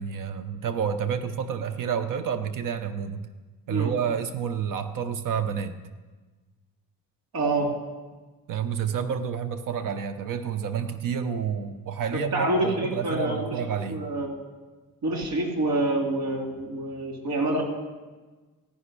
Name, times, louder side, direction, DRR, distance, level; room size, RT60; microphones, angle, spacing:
voice 1, 0.0-3.2 3.7-5.7 8.5-14.0, right 7 dB, 65° right, 9 dB, 0.8 m, -29 dB
voice 2, 7.3-7.7 12.1-13.6 13.9-14.3 15.0-17.6, right 1 dB, 85° right, 1 dB, 2.9 m, -27 dB
14.5 x 6.0 x 9.8 m, 1.3 s
cardioid pair, 135°, 34 cm